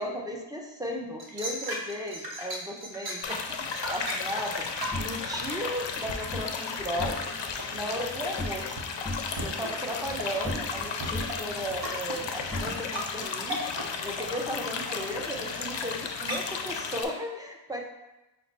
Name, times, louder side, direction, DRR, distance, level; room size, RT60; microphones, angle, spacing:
voice 1, 0.0-4.7 5.0-7.2 7.7-8.9 9.4-13.6 14.0-17.8, equal, 10° right, 0 dB, 0.7 m, -35 dB
sound 1, 1.2-7.2 7.4-16.0 16.3-16.4, right 1 dB, 60° right, 1.0 m, -37 dB
sound 2, 3.2-17.0, left 5 dB, 85° left, 0.5 m, -34 dB
sound 3, 4.9-6.5 6.9-7.5 7.8-8.7 9.0-10.8 11.1-13.2, left 1 dB, 10° left, 1.3 m, -39 dB
5.7 x 2.2 x 4.0 m, 0.99 s
wide cardioid pair, 60°, 43 cm